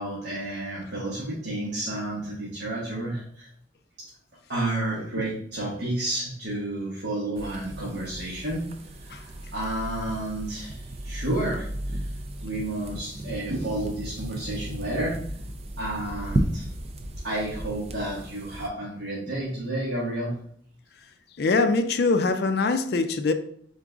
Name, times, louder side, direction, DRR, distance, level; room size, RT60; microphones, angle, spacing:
voice 1, 0.0-3.5 4.0-4.1 4.5-8.6 9.0-12.1 12.4-15.2 15.8-16.7 17.2-20.4, right 1 dB, 70° right, 1.2 m, -31 dB
sound 1, 7.4-18.7, right 1 dB, 35° right, 0.4 m, -34 dB
voice 2, 21.4-23.3, left 3 dB, 55° left, 0.4 m, -23 dB
3.8 x 3.6 x 3.6 m
head